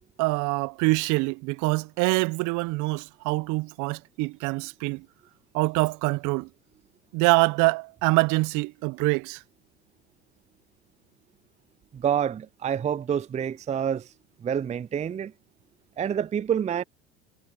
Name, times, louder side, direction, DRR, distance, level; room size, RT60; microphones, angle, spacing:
voice 1, 0.2-5.1 5.5-6.5 7.1-9.4, right 25 dB, 55° right, 0.9 m, -25 dB
voice 2, 11.9-14.1 14.4-15.3 16.0-16.8, right 8 dB, 20° right, 0.6 m, -27 dB
hypercardioid pair, 80°, 36 cm